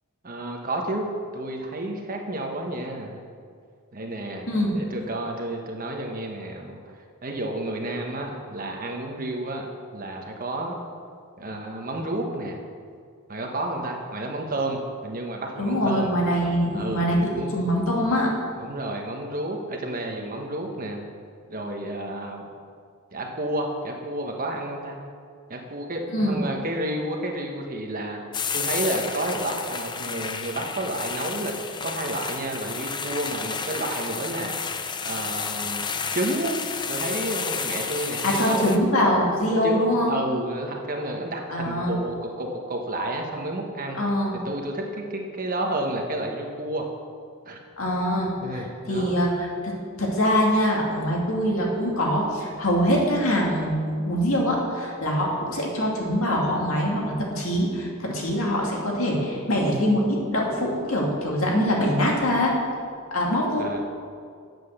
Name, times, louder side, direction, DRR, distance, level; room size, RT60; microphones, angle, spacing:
voice 1, 0.2-1.1 1.3-3.2 3.9-4.5 4.7-6.8 7.2-9.7 9.9-10.7 11.4-12.5 13.3-16.1 16.7-17.5 18.6-21.0 21.5-22.5 23.1-25.0 25.5-28.2 28.5-31.5 31.8-34.5 35.0-35.9 36.1-36.6 36.9-38.8 39.6-44.0 44.3-46.8 47.4-47.6 48.2-49.2 63.6-63.8, right 1 dB, 40° right, 2 dB, 1.2 m, -31 dB
voice 2, 15.6-18.3 26.1-26.4 38.2-40.2 41.5-42.0 44.0-44.4 47.8-62.5 63.1-63.8, equal, 70° left, -2 dB, 2.3 m, -24 dB
sound 1, 28.3-38.8, left 6 dB, 20° left, 0.4 m, -31 dB
9.2 x 7.9 x 6.5 m, 2.2 s
head